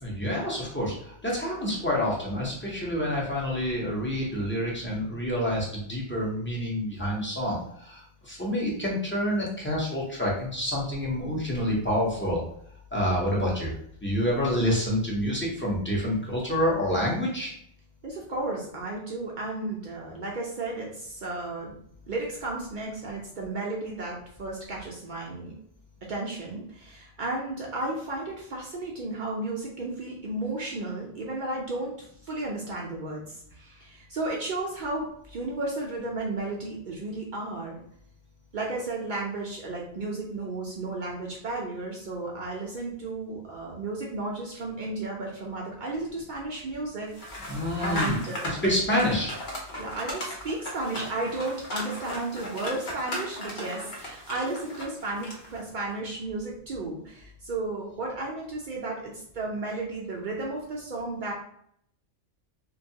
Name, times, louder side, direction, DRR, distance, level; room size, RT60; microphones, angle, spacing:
voice 1, 0.0-12.4 12.9-13.7 14.0-17.5 47.5-48.2 48.5-49.3, equal, 15° left, -5 dB, 0.5 m, -28 dB
voice 2, 18.0-21.7 22.1-25.5 26.0-32.0 32.2-37.8 38.5-47.1 47.4-48.6 49.7-61.3, right 2 dB, 60° right, -2 dB, 0.5 m, -33 dB
sound 1, 47.1-55.6, left 1 dB, 50° left, 0.7 m, -37 dB
2.6 x 2.3 x 2.7 m, 0.69 s
omnidirectional pair, 1.2 m